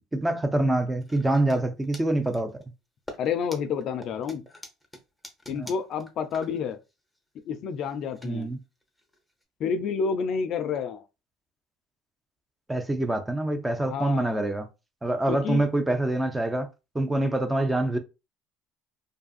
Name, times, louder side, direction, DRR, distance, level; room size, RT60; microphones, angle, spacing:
voice 1, 0.1-2.5 5.5-5.7 8.2-8.6 12.7-14.7 15.0-16.7 16.9-18.0, right 1 dB, 10° right, 0.5 m, -25 dB
sound 1, 1.0-1.6 1.8-2.6 3.1-9.4, left 1 dB, 5° left, 0.8 m, -46 dB
voice 2, 3.2-4.4 5.5-6.8 7.5-8.5 9.6-11.1 13.8-14.4 15.3-15.7, left 6 dB, 55° left, 0.4 m, -29 dB
2.6 x 2.3 x 2.4 m
supercardioid pair, 80°, 0 cm